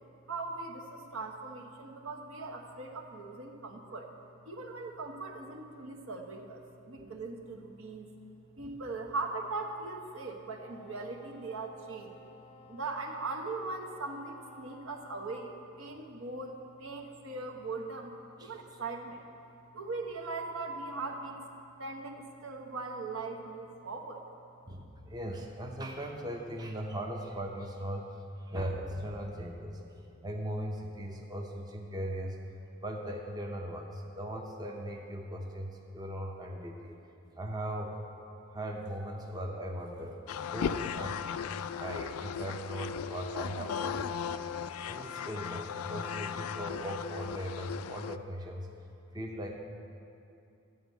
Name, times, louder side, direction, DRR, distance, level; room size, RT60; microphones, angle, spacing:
voice 1, 0.3-4.1 4.4-8.1 8.6-12.2 12.7-19.2 19.7-21.4 21.8-24.2, right 3 dB, 70° right, 2 dB, 1.0 m, -40 dB
Wind instrument woodwind instrument, 10.6-15.7, left 2 dB, 30° left, 0.5 m, -56 dB
voice 2, 24.7-28.0 28.5-29.8 30.2-32.4 32.8-37.0 37.3-38.0 38.5-40.2 40.5-41.2 41.8-44.4 44.9-48.7 49.1-49.5, equal, 20° right, 1 dB, 0.6 m, -39 dB
sound 1, 40.3-48.2, left 7 dB, 85° left, 0.3 m, -37 dB
12.5 x 4.3 x 8.2 m, 2.7 s
head